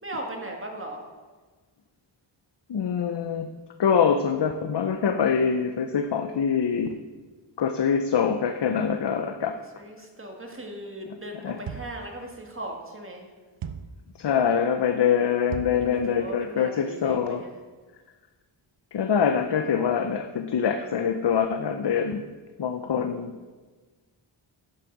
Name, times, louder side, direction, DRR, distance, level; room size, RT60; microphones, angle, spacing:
voice 1, 0.0-1.1 9.5-13.3 15.8-17.6 23.1-23.5, right 1 dB, 25° right, 2 dB, 1.7 m, -38 dB
voice 2, 2.7-3.5 3.8-7.0 7.6-9.6 11.4-11.6 14.2-17.4 18.9-22.2 22.6-23.4, left 7 dB, 60° left, 7 dB, 0.6 m, -24 dB
sound 1, 11.7-12.1 13.6-14.0 15.5-15.9, right 7 dB, 75° right, 0.7 m, -36 dB
9.7 x 6.4 x 5.9 m, 1.3 s
wide cardioid pair, 90°, 48 cm